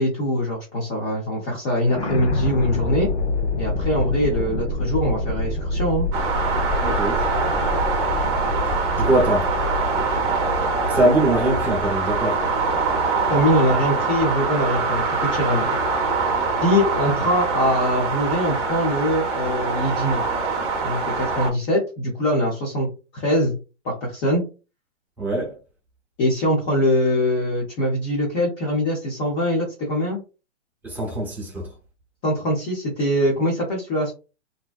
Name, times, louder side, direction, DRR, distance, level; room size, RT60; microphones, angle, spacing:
voice 1, 0.0-3.1 3.6-6.1 13.3-15.7 16.6-20.2 20.8-22.9 23.1-23.6 23.8-24.4 26.2-30.2 32.2-34.1, equal, 20° left, 0.5 m, -22 dB
sound 1, 1.8-12.9, left 2 dB, 65° left, 0.8 m, -27 dB
sound 2, 6.1-21.5, right 4 dB, 30° right, 0.7 m, -24 dB
voice 2, 6.8-7.3 9.0-9.5 10.9-12.4 25.2-25.5 30.8-31.7, right 1 dB, 5° right, 1.0 m, -22 dB
2.6 x 2.0 x 2.4 m
figure-of-eight pair, 125°, 36 cm